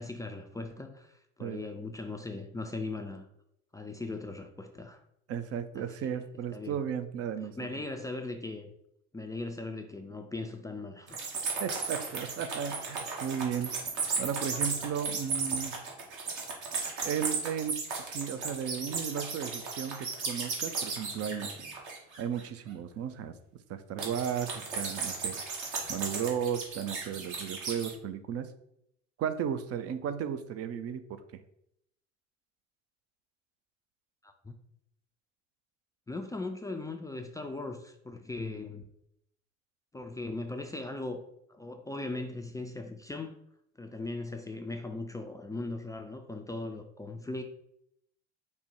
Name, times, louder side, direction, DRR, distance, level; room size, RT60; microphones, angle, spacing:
voice 1, 0.0-3.3 3.7-5.0 5.7-6.2 6.5-6.8 7.6-8.7 9.1-11.4 34.2-34.5 36.1-38.8 39.9-41.2 41.5-43.4 43.8-47.4, left 2 dB, 10° left, 4 dB, 0.4 m, -39 dB
voice 2, 5.3-7.7 11.6-13.7 14.2-15.8 17.0-21.5 22.2-23.3 23.7-25.4 25.9-28.5 29.2-31.2, right 8 dB, 40° right, 10 dB, 0.6 m, -35 dB
sound 1, 11.1-22.4 24.0-27.9, right 4 dB, 55° right, 1.4 m, -35 dB
5.1 x 2.1 x 4.5 m, 0.75 s
hypercardioid pair, 60°, 36 cm